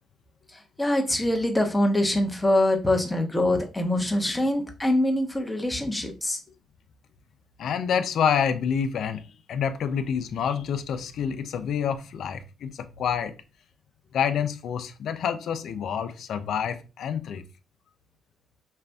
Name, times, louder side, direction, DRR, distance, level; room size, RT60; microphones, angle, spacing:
voice 1, 0.5-6.4, left 1 dB, 10° left, 1.1 m, -24 dB
voice 2, 7.6-13.3 14.1-17.4, left 7 dB, 70° left, 0.6 m, -28 dB
5.6 x 2.5 x 3.4 m
cardioid pair, 90°, 0 cm